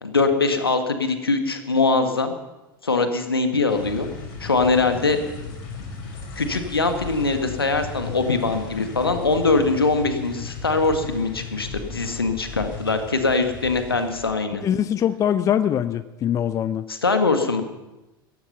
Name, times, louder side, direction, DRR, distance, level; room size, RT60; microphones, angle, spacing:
voice 1, 0.0-2.3 2.8-4.1 4.4-5.2 6.4-14.6 16.9-17.6, left 3 dB, 80° left, 7 dB, 1.7 m, -22 dB
sound 1, 3.7-14.3, left 4 dB, 50° left, 5.8 m, -36 dB
voice 2, 14.6-16.9, left 9 dB, 25° left, 14 dB, 0.6 m, -22 dB
16.5 x 14.5 x 5.6 m, 1.0 s
figure-of-eight pair, 80°, 12 cm